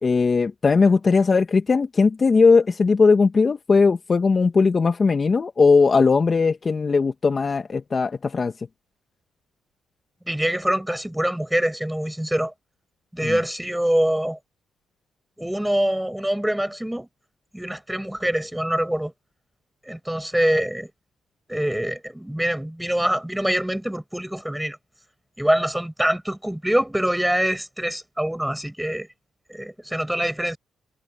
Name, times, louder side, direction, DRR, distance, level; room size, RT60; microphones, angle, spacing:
voice 1, 0.0-8.5 13.2-13.4, left 4 dB, 35° left, 2.1 m, -18 dB
voice 2, 10.3-12.5 13.1-14.4 15.4-17.1 17.5-19.1 19.9-20.9 21.5-24.8 25.4-29.1 29.5-30.6, right 1 dB, 5° right, 7.2 m, -24 dB
cardioid pair, 90°, 0 cm